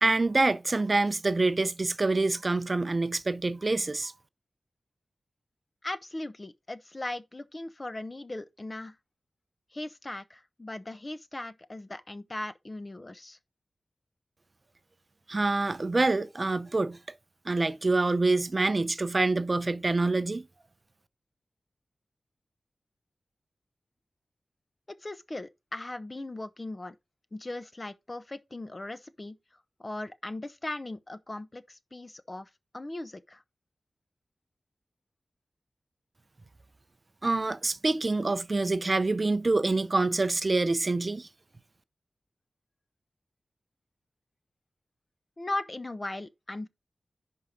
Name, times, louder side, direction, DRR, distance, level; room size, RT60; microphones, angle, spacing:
voice 1, 0.0-4.1 15.3-17.0 17.5-20.5 37.2-41.3, right 3 dB, 35° right, 0.6 m, -26 dB
voice 2, 5.8-9.0 9.7-13.4 25.0-27.0 27.3-29.4 29.8-33.4 45.4-46.7, left 2 dB, 25° left, 0.7 m, -38 dB
11.0 x 4.6 x 3.9 m
wide cardioid pair, 120°, 0 cm